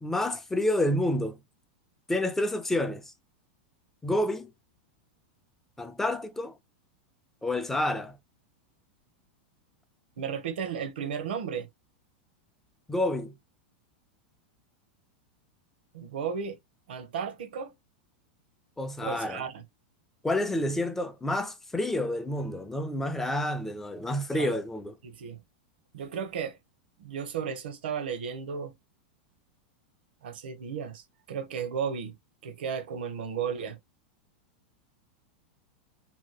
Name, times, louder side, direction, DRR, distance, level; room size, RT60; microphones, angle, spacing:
voice 1, 0.0-1.4 2.1-3.1 4.0-4.5 5.8-6.6 7.4-8.2 12.9-13.3 18.8-19.4 20.2-24.9, left 1 dB, 5° left, 0.4 m, -29 dB
voice 2, 10.2-11.7 15.9-16.6 16.9-17.7 19.0-19.6 24.3-24.6 25.0-25.4 25.9-26.6 27.0-28.7 30.2-32.1 32.4-33.8, right 7 dB, 85° right, 0.8 m, -34 dB
2.8 x 2.3 x 2.9 m
supercardioid pair, 135°, 5 cm